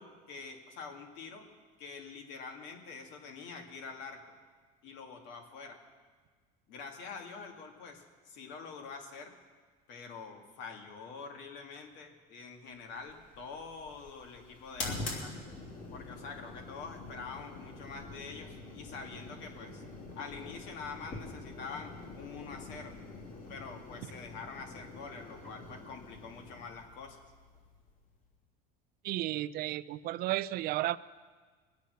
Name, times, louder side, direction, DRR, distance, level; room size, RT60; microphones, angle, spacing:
voice 1, 0.0-1.5 1.8-4.3 4.8-5.8 6.7-9.3 9.9-15.3 15.9-19.8 20.2-22.9 23.5-27.2, left 5 dB, 60° left, 3 dB, 2.3 m, -46 dB
sound 1, 12.9-28.2, left 2 dB, 45° left, 3.3 m, -45 dB
voice 2, 29.0-31.0, right 15 dB, 50° right, 16 dB, 0.5 m, -33 dB
22.0 x 8.2 x 6.4 m, 1.5 s
cardioid pair, 140°, 21 cm